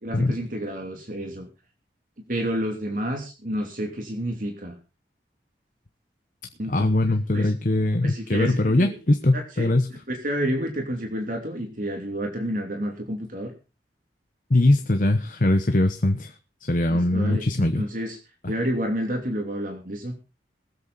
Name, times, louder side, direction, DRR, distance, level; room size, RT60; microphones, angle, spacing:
voice 1, 0.0-1.5 2.3-4.8 6.6-6.9 7.3-7.5 8.0-9.0 9.3-13.5 16.9-18.2 18.5-20.1, equal, 50° right, 2 dB, 3.0 m, -30 dB
voice 2, 6.7-9.9 14.5-16.3 16.7-17.8 18.4-18.5, left 1 dB, 45° left, 7 dB, 1.0 m, -21 dB
21.5 x 8.2 x 4.0 m, 0.31 s
head